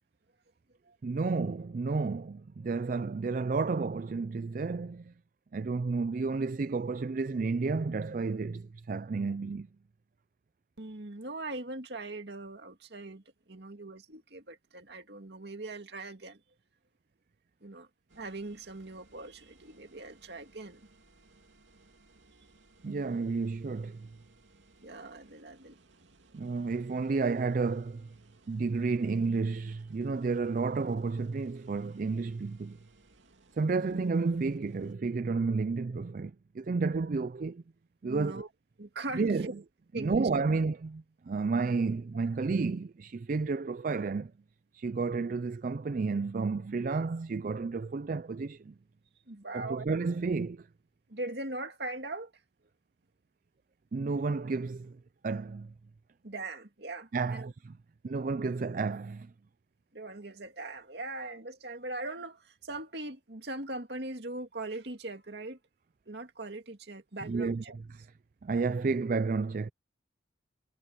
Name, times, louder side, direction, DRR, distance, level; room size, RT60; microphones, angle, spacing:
voice 1, 1.0-5.1 5.5-9.7 22.8-24.1 26.3-28.1 28.5-32.8 33.6-37.6 38.0-38.4 39.1-39.5 39.9-44.3 44.7-48.7 49.5-50.7 53.9-55.0 55.2-55.7 57.1-57.7 58.0-59.3 67.2-67.8 68.4-69.7, right 4 dB, 45° right, 0.4 m, -31 dB
voice 2, 10.8-16.4 17.6-17.9 18.2-20.9 24.8-25.8 26.4-26.5 33.8-34.1 38.1-38.5 38.8-39.5 39.9-40.3 49.3-49.9 51.1-52.3 56.2-57.5 59.9-65.6 66.1-67.8, right 2 dB, 60° right, 2.4 m, -41 dB
sound 1, 18.1-34.9, right 2 dB, 85° right, 2.6 m, -62 dB
head